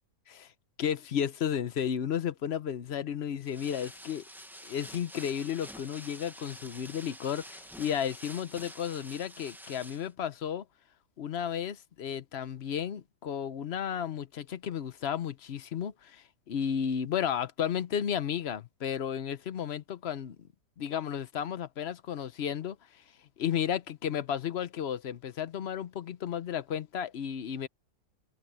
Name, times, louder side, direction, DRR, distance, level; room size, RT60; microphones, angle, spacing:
voice 1, 0.8-4.2 4.6-10.6 11.2-20.4 20.8-23.0 23.4-27.7, left 8 dB, 50° left, 0.7 m, -33 dB
sound 1, 3.4-10.1, equal, 5° right, 0.4 m, -48 dB
omnidirectional pair, 2.0 m